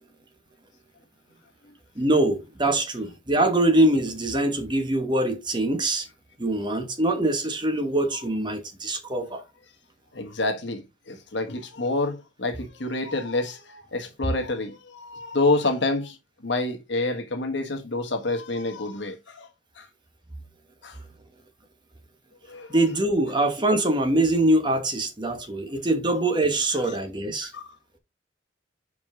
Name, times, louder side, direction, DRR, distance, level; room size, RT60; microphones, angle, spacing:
voice 1, 2.0-6.1 6.4-9.4 22.7-27.5, right 1 dB, 25° right, 1.1 m, -23 dB
voice 2, 10.1-16.2 16.4-19.5 19.8-19.9 20.8-21.0 22.5-22.8 27.4-27.7, left 2 dB, 65° left, 1.3 m, -28 dB
5.4 x 4.9 x 3.7 m
head